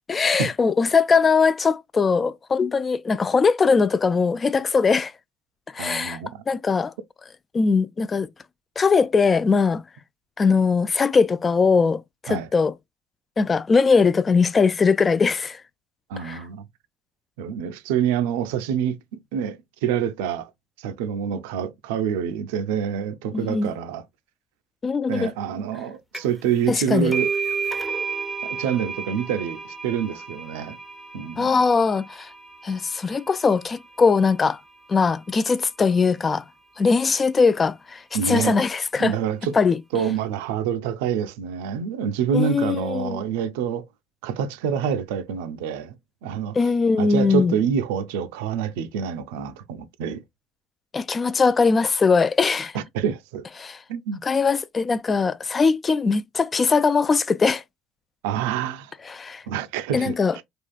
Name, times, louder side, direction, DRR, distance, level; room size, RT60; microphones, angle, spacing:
voice 1, 0.1-5.1 5.7-6.2 6.5-6.9 7.5-8.3 8.8-9.8 10.4-12.7 13.4-15.6 16.2-16.4 23.3-23.7 24.8-25.3 26.7-27.1 31.4-32.3 32.6-34.6 34.9-36.4 36.8-39.1 39.5-39.8 42.3-43.2 46.6-47.6 50.9-52.7 53.6-53.8 54.2-57.6 59.1-59.4 59.9-60.4, left 5 dB, 30° left, 0.4 m, -20 dB
voice 2, 5.8-6.4 12.3-12.5 16.1-16.6 17.4-20.5 20.8-24.0 25.1-27.3 28.4-30.8 31.1-31.6 38.1-38.6 39.0-39.5 39.9-43.9 44.2-45.9 46.2-46.7 47.0-50.2 52.7-53.5 53.9-54.2 58.2-58.9 59.5-60.4, right 8 dB, 80° right, 0.4 m, -27 dB
sound 1, 26.1-26.5 26.7-34.0, right 5 dB, 5° left, 0.8 m, -32 dB
3.5 x 2.4 x 2.3 m
hypercardioid pair, 65°, 0 cm